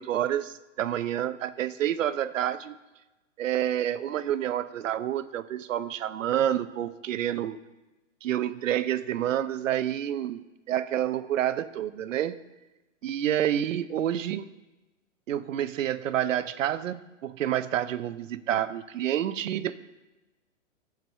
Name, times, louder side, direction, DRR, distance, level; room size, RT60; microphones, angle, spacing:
voice 1, 0.0-2.8 3.4-7.6 8.2-12.4 13.0-14.5 15.3-19.8, right 11 dB, 80° right, 14 dB, 0.7 m, -28 dB
12.5 x 4.8 x 6.9 m, 1.1 s
hypercardioid pair, 135°, 38 cm